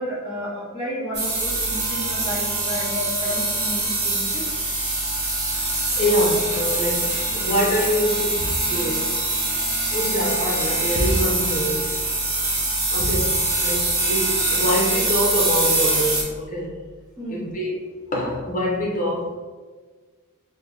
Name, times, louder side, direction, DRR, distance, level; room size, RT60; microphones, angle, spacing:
voice 1, 0.0-4.6 17.2-17.5, equal, 15° right, -15 dB, 1.1 m, -32 dB
sound 1, 1.1-16.2, right 2 dB, 50° right, 1.0 m, -24 dB
voice 2, 5.9-9.1 9.9-11.9 12.9-16.7 17.3-17.8 18.1-19.4, equal, 35° left, -2 dB, 0.8 m, -25 dB
3.5 x 2.2 x 3.6 m, 1.4 s
head